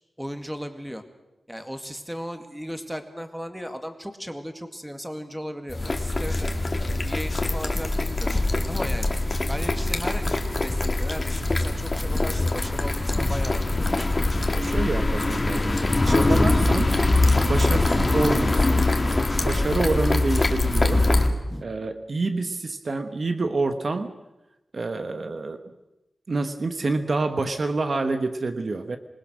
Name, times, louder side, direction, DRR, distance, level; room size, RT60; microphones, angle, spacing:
voice 1, 0.2-1.0 1.5-6.5 7.0-9.1 9.5-14.0 21.3-21.7, equal, 5° right, 8 dB, 2.1 m, -36 dB
sound 1, 5.7-21.3, left 2 dB, 30° left, 2.1 m, -23 dB
voice 2, 14.5-16.9 17.5-18.9 19.4-21.1 21.6-24.2 24.7-25.6 26.3-29.0, right 3 dB, 50° right, 8 dB, 1.2 m, -27 dB
26.5 x 20.5 x 6.3 m, 0.97 s
wide cardioid pair, 130°, 0 cm